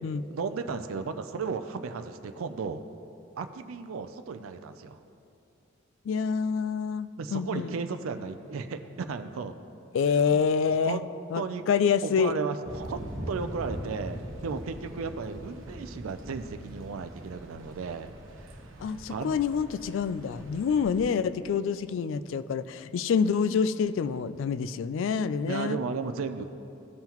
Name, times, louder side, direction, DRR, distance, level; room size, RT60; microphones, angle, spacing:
voice 1, 0.3-2.8 3.4-5.0 7.2-9.5 10.2-10.4 10.8-11.1 11.4-11.6 12.0-18.1 18.4-18.6 19.1-19.3 25.5-26.4, right 5 dB, 85° right, 8 dB, 0.4 m, -35 dB
voice 2, 6.0-7.7 9.9-11.0 11.3-12.3 18.8-25.8, left 6 dB, 65° left, 14 dB, 0.3 m, -27 dB
Thunder / Rain, 12.6-21.0, equal, 70° right, 1.1 m, -42 dB
16.0 x 5.6 x 3.0 m, 2.7 s
head